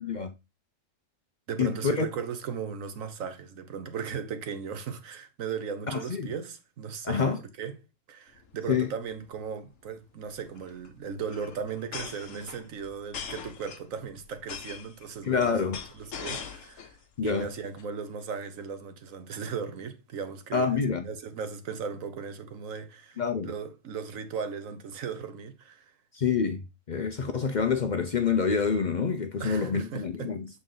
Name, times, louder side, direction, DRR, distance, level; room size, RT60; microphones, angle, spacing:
voice 1, 0.0-0.3 1.6-2.1 5.9-6.3 7.0-7.4 8.7-8.9 15.2-15.8 17.2-17.5 20.5-21.1 23.2-23.5 26.1-26.6 26.9-30.5, left 6 dB, 50° left, 0.6 m, -27 dB
voice 2, 1.5-7.2 7.6-7.8 8.1-15.7 15.9-17.0 17.2-25.8 29.4-30.3, right 6 dB, 90° right, 1.3 m, -37 dB
sound 1, 8.3-8.5 8.8-8.9 9.1-9.4 10.4-17.0 17.3-17.8, left 6 dB, 75° left, 1.2 m, -41 dB
6.8 x 4.1 x 3.8 m
omnidirectional pair, 1.3 m